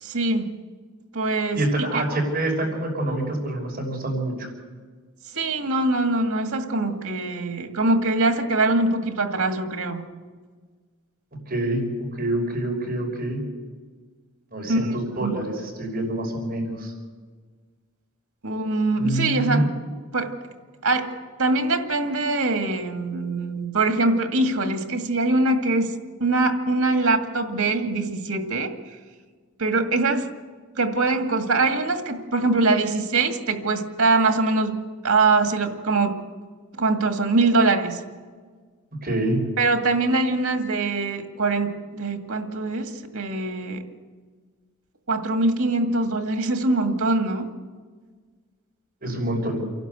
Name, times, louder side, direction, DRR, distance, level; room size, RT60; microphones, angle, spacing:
voice 1, 0.0-0.5 1.1-2.0 5.3-10.0 14.7-14.8 15.2-15.3 18.4-19.7 20.1-20.3 20.8-21.1 21.4-25.9 26.2-28.7 29.6-30.3 30.8-34.8 35.0-36.2 36.8-38.0 39.6-43.8 45.1-47.5, right 3 dB, 85° right, 5 dB, 2.1 m, -23 dB
voice 2, 1.5-4.5 11.5-13.4 14.5-16.9 19.0-19.7 39.0-39.4 49.0-49.6, right 1 dB, 45° right, -1 dB, 5.9 m, -26 dB
28.5 x 12.0 x 8.2 m, 1.5 s
head